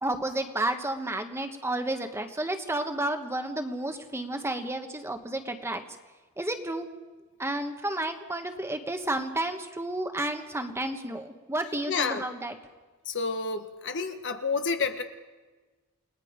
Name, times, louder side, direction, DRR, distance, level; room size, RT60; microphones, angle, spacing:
voice 1, 0.0-5.8 6.4-6.9 7.4-12.6, right 1 dB, 10° right, 5 dB, 1.4 m, -31 dB
voice 2, 11.9-12.2 13.1-15.0, left 4 dB, 55° left, 7 dB, 1.4 m, -29 dB
29.0 x 19.5 x 5.2 m, 1.3 s
head